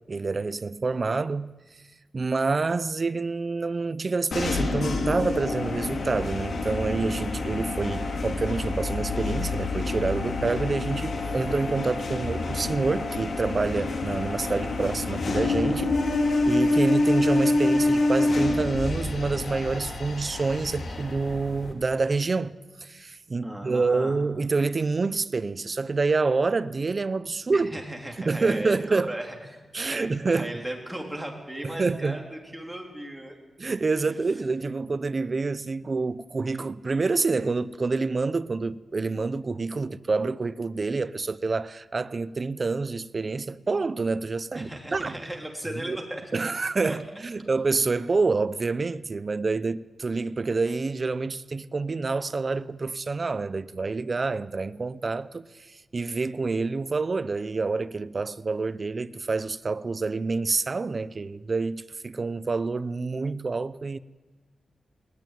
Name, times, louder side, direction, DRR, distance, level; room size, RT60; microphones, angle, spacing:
voice 1, 0.1-1.5 2.1-16.1 16.4-22.6 22.8-27.8 28.2-29.1 29.7-30.5 31.6-32.2 33.6-45.2 45.9-46.0 46.3-64.0, right 3 dB, 35° right, 0.6 m, -27 dB
sound 1, 4.3-21.7, left 2 dB, 60° left, 3.3 m, -27 dB
voice 2, 23.4-24.2 27.5-33.4 34.0-34.1 44.5-46.2 46.8-47.0, right 1 dB, 5° right, 3.6 m, -36 dB
20.0 x 18.5 x 9.3 m
wide cardioid pair, 160°, 0 cm